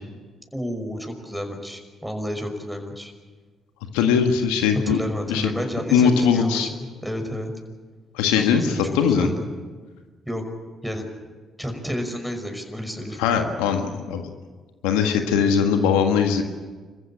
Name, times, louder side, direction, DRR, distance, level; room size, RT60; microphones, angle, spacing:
voice 1, 0.5-3.1 4.9-7.5 8.3-9.5 10.3-10.4 10.8-11.1 11.6-13.2, equal, ahead, 4 dB, 5.6 m, -31 dB
voice 2, 3.9-5.0 5.3-5.5 5.9-6.7 8.1-9.3 13.2-14.3 14.8-16.4, left 7 dB, 85° left, 5 dB, 1.6 m, -20 dB
27.0 x 15.0 x 8.9 m, 1.4 s
hypercardioid pair, 50°, 0 cm